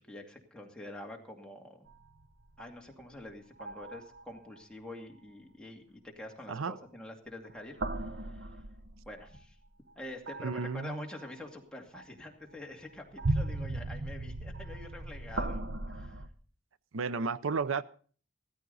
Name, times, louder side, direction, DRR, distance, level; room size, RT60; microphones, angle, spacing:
voice 1, 0.0-1.9 2.6-8.4 9.1-9.6 10.0-16.2, left 1 dB, 5° left, 2.4 m, -46 dB
sound 1, 1.9-3.2 3.6-4.4 7.4-9.4 10.3-11.3 11.9-12.0 12.7-16.3, right 2 dB, 60° right, 1.1 m, -37 dB
voice 2, 10.4-11.0 16.9-17.8, right 4 dB, 90° right, 0.6 m, -33 dB
16.0 x 14.0 x 4.1 m
head